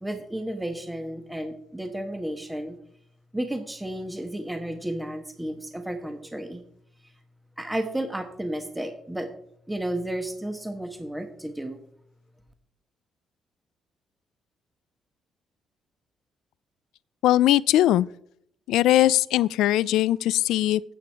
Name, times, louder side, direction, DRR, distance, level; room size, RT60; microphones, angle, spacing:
voice 1, 0.0-2.8 3.3-6.6 7.6-9.3 9.7-11.8, right 1 dB, 10° right, 1.2 m, -32 dB
voice 2, 17.2-18.1 18.7-20.8, left 14 dB, 90° left, 0.3 m, -20 dB
9.2 x 8.6 x 4.6 m
cardioid pair, 90°, 0 cm